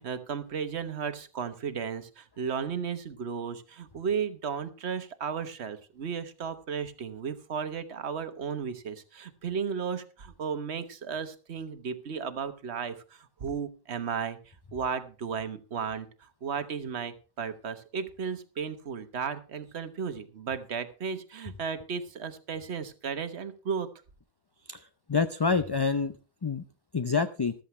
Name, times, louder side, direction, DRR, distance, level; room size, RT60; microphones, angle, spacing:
voice 1, 0.0-23.9, right 6 dB, 70° right, 11 dB, 1.4 m, -34 dB
voice 2, 24.7-26.1 26.4-26.6 26.9-27.5, left 5 dB, 30° left, 10 dB, 0.4 m, -27 dB
14.0 x 13.0 x 3.2 m, 0.34 s
omnidirectional pair, 1.2 m